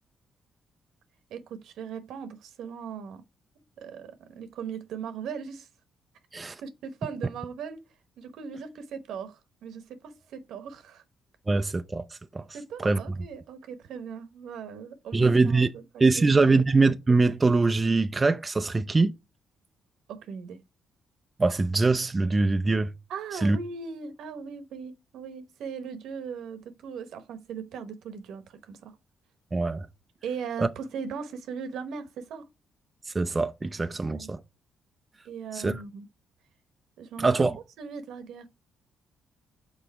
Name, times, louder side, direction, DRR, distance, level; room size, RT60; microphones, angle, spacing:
voice 1, 1.3-3.2 3.8-5.7 6.6-7.8 8.2-11.0 12.5-16.6 20.1-20.6 23.1-29.0 30.2-32.4 33.9-34.3 35.2-36.1 37.0-37.3 37.8-38.5, right 6 dB, 80° right, 0.9 m, -39 dB
voice 2, 11.5-12.0 12.3-12.4 12.8-13.0 15.1-15.7 16.0-19.1 21.4-22.9 23.4-23.6 29.5-29.9 30.6-30.7 33.1-34.4 35.5-35.8 37.2-37.6, right 3 dB, 25° right, 0.4 m, -23 dB
5.8 x 4.0 x 4.6 m
cardioid pair, 90°, 0 cm